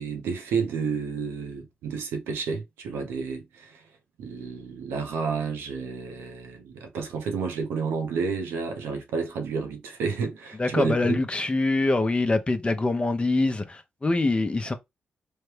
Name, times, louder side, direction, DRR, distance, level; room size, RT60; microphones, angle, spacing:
voice 1, 0.0-3.8 4.2-11.2, right 5 dB, 80° right, 0.7 m, -30 dB
voice 2, 10.6-14.7, left 2 dB, 30° left, 0.7 m, -24 dB
3.2 x 2.2 x 3.3 m
hypercardioid pair, 40°, 4 cm